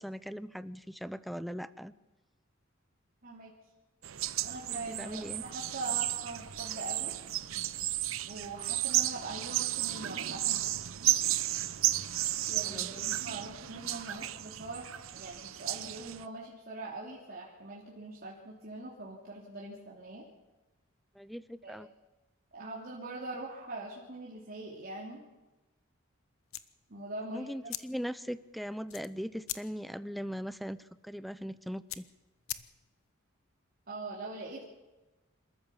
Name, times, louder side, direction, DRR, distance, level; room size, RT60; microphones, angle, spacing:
voice 1, 0.0-1.9 4.7-5.4 12.6-13.0 21.1-21.9 27.3-32.1, equal, ahead, 16 dB, 0.6 m, -40 dB
voice 2, 3.2-3.5 4.4-7.1 8.3-10.7 12.5-14.8 15.1-20.2 21.6-21.9 22.5-25.2 26.9-27.5 33.9-34.6, right 2 dB, 50° right, -5 dB, 3.2 m, -42 dB
sound 1, 4.0-16.3, right 14 dB, 75° right, 0.7 m, -33 dB
sound 2, 26.4-33.1, left 13 dB, 90° left, 0.9 m, -45 dB
26.5 x 14.0 x 7.2 m, 1.1 s
head